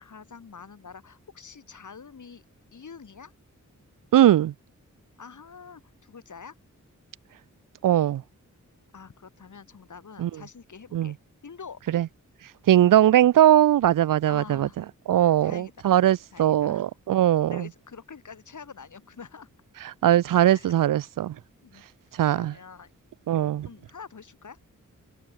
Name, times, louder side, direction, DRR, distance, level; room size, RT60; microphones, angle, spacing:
voice 1, 0.0-2.4 2.7-3.3 5.2-6.5 8.9-11.2 11.4-11.8 14.3-14.8 15.1-15.9 16.3-16.8 17.5-19.5 20.4-20.7 21.6-22.9 23.6-24.6, left 6 dB, 70° left, 4.6 m, -46 dB
voice 2, 4.1-4.5 7.8-8.2 10.2-10.3 10.9-11.1 11.9-12.1 12.7-14.7 15.1-17.7 20.0-21.3 22.2-22.5 23.3-23.7, right 12 dB, 85° right, 0.5 m, -20 dB
cardioid pair, 70°, 32 cm